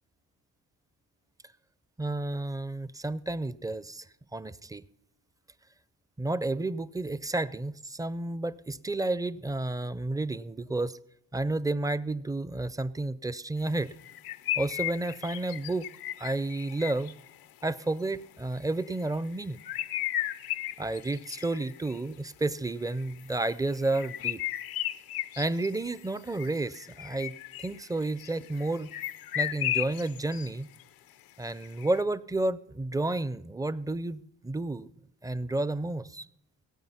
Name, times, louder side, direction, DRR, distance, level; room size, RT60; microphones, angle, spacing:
voice 1, 2.0-4.0 4.3-4.8 6.2-11.0 11.3-13.9 14.6-15.9 16.2-17.1 17.6-19.6 20.8-24.4 25.4-28.9 29.3-30.7 31.4-34.9 35.2-36.3, right 2 dB, 10° right, 17 dB, 0.4 m, -31 dB
sound 1, 14.0-17.3 18.8-19.1 19.4-22.0 22.8-30.5 30.8-30.9 31.6-32.0, left 13 dB, 90° left, 0.7 m, -35 dB
17.5 x 8.8 x 5.7 m, 0.78 s
cardioid pair, 85°, 35 cm